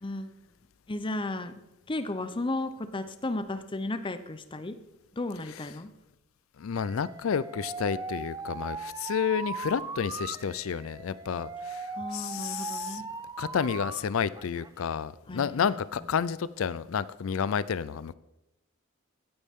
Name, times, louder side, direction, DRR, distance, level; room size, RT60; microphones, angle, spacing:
voice 1, 0.0-0.4 0.9-1.5 1.9-4.8 5.1-5.9 12.0-13.1 15.3-15.8, left 2 dB, 25° left, 10 dB, 0.6 m, -34 dB
voice 2, 6.6-13.0 13.4-18.1, left 7 dB, 80° left, 18 dB, 0.4 m, -30 dB
Alarm, 6.7-14.0 14.3-14.9, right 4 dB, 15° right, 0.4 m, -39 dB
16.0 x 9.7 x 3.6 m, 0.94 s
head